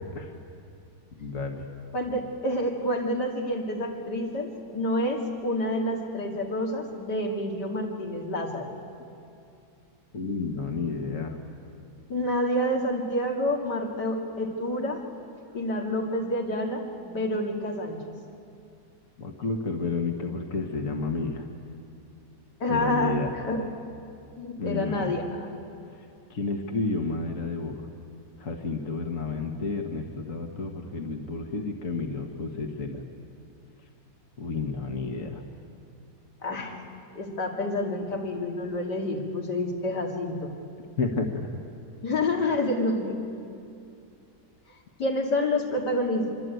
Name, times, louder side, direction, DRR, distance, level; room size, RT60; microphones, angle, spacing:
voice 1, 1.1-1.7 10.1-11.4 19.2-21.5 22.7-23.3 24.6-25.2 25.9-27.9 28.4-33.0 34.4-35.4 41.0-41.4, left 3 dB, 50° left, 3 dB, 1.9 m, -31 dB
voice 2, 1.9-8.7 12.1-15.0 15.5-18.0 22.6-23.2 23.4-23.6 24.4-25.5 36.4-36.8 37.1-40.5 42.0-43.2 45.0-46.3, left 1 dB, 75° left, 1 dB, 3.2 m, -28 dB
25.0 x 24.5 x 9.3 m, 2.5 s
omnidirectional pair, 1.8 m